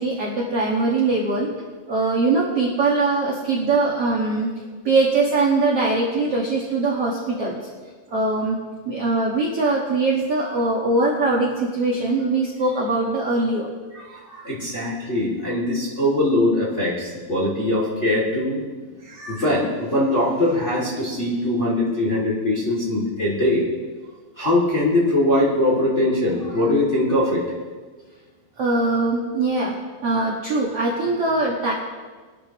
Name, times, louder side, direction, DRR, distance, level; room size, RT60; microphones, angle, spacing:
voice 1, 0.0-1.5 1.9-4.5 4.8-7.6 8.1-8.5 8.8-13.7 28.6-29.7 30.0-31.7, right 3 dB, 90° right, -5 dB, 1.3 m, -21 dB
voice 2, 13.9-18.6 19.0-23.6 24.4-27.4, left 1 dB, 25° left, -5 dB, 1.5 m, -21 dB
22.5 x 12.5 x 3.0 m, 1.4 s
omnidirectional pair, 5.3 m